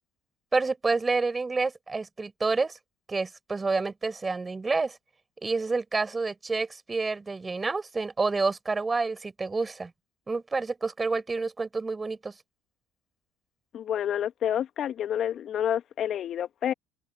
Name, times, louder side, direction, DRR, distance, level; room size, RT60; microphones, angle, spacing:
voice 1, 0.5-2.8 3.1-5.0 5.4-9.9 10.3-12.3, right 3 dB, 20° right, 4.4 m, -28 dB
voice 2, 13.7-16.7, left 10 dB, 50° left, 1.8 m, -29 dB
hypercardioid pair, 70°, 0 cm